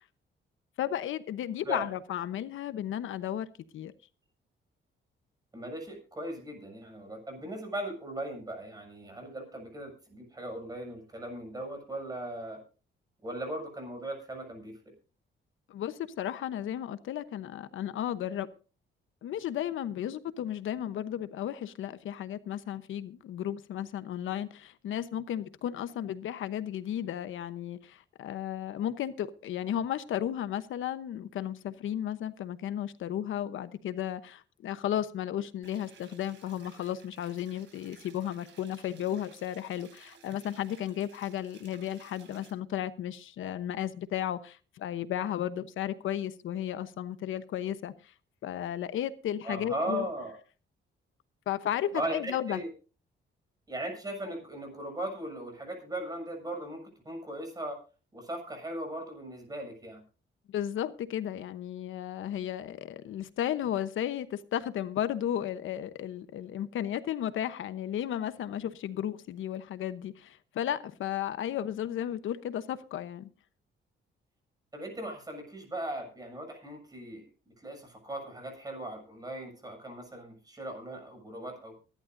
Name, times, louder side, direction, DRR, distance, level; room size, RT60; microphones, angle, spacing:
voice 1, 0.8-3.9 15.7-18.5 19.2-48.1 48.4-50.1 51.5-52.6 60.5-73.3, left 11 dB, 85° left, 1.0 m, -34 dB
voice 2, 5.5-12.6 13.2-14.7 49.4-50.4 51.9-52.7 53.7-57.8 58.1-60.0 74.7-77.3 77.6-81.7, right 1 dB, 20° right, 7.1 m, -38 dB
sound 1, 35.6-42.5, right 6 dB, 70° right, 4.1 m, -57 dB
24.0 x 11.5 x 2.7 m
cardioid pair, 130°, 20 cm